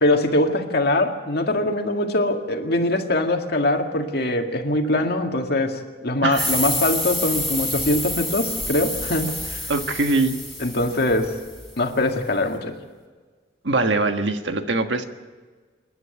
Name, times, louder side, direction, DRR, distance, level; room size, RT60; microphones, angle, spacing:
voice 1, 0.0-9.7 10.6-11.3 11.8-12.7, left 1 dB, 60° left, 4 dB, 2.0 m, -22 dB
voice 2, 6.2-6.6 9.7-10.4 13.6-15.0, right 3 dB, 70° right, 6 dB, 1.5 m, -22 dB
sound 1, 6.3-11.6, left 1 dB, ahead, 4.3 m, -28 dB
27.5 x 11.0 x 9.0 m, 1.4 s
head